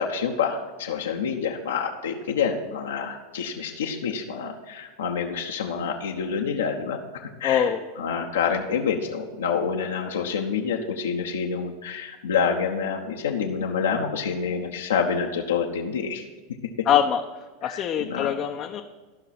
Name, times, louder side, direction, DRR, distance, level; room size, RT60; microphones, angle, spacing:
voice 1, 0.0-7.7 8.0-16.2 17.6-18.3, left 6 dB, 75° left, 0 dB, 1.0 m, -27 dB
voice 2, 7.4-7.8 16.9-17.2 17.6-18.8, left 9 dB, 40° left, 2 dB, 0.8 m, -23 dB
14.0 x 5.8 x 5.9 m, 1.3 s
figure-of-eight pair, 90°, 0 cm